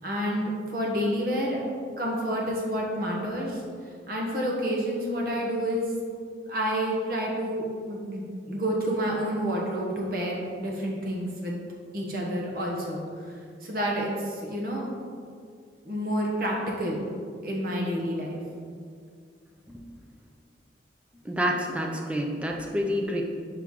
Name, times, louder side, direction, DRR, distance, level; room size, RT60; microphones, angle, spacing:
voice 1, 0.0-1.6 2.0-3.6 4.1-5.9 6.5-11.6 11.9-14.8 15.8-17.0 17.4-18.4, equal, 50° right, -2 dB, 1.1 m, -29 dB
voice 2, 21.3-23.2, equal, 5° right, 0 dB, 0.4 m, -28 dB
6.0 x 4.4 x 3.6 m, 2.2 s
head